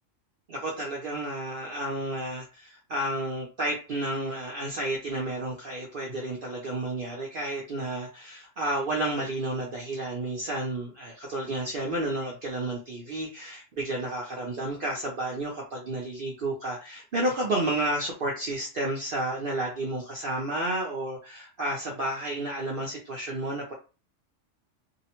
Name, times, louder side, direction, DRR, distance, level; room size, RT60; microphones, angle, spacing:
voice 1, 0.5-23.7, right 1 dB, 55° right, -2 dB, 0.7 m, -31 dB
2.7 x 2.1 x 2.9 m, 0.33 s
omnidirectional pair, 1.3 m